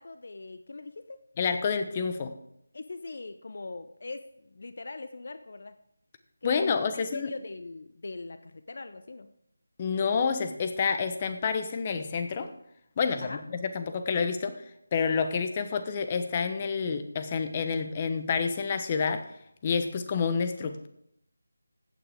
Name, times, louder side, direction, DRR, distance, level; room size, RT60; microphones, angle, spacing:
voice 1, 0.0-1.2 2.7-5.7 6.4-9.3 13.2-13.4, left 3 dB, 55° left, 11 dB, 0.7 m, -41 dB
voice 2, 1.4-2.3 6.4-7.3 9.8-12.5 13.0-14.6 14.9-19.3 19.6-20.9, left 5 dB, 25° left, 9 dB, 1.0 m, -28 dB
15.0 x 8.9 x 3.7 m, 0.76 s
figure-of-eight pair, 160°, 0 cm